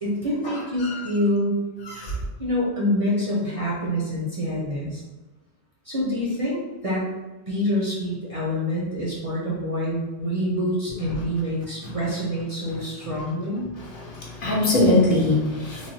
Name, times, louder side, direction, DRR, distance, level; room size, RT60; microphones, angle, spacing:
voice 1, 0.0-1.6 2.4-5.0 5.8-7.0 7.5-13.7, equal, 40° right, -6 dB, 0.6 m, -26 dB
voice 2, 13.9-15.9, left 2 dB, 60° left, -4 dB, 0.8 m, -22 dB
3.1 x 2.2 x 2.6 m, 1.2 s
omnidirectional pair, 1.1 m